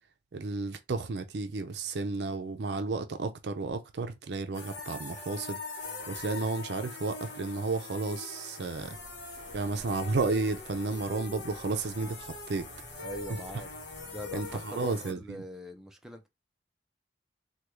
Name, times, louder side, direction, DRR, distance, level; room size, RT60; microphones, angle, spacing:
voice 1, 0.3-5.6 6.1-9.0 9.5-12.7 13.3-13.4 14.3-15.4, right 3 dB, 65° right, 0.5 m, -32 dB
sound 1, 4.5-15.1, left 3 dB, 70° left, 1.0 m, -43 dB
sound 2, 8.7-14.6, right 1 dB, 30° left, 1.2 m, -53 dB
voice 2, 13.0-13.7 14.0-16.3, equal, 5° right, 0.5 m, -43 dB
3.4 x 2.3 x 3.0 m
head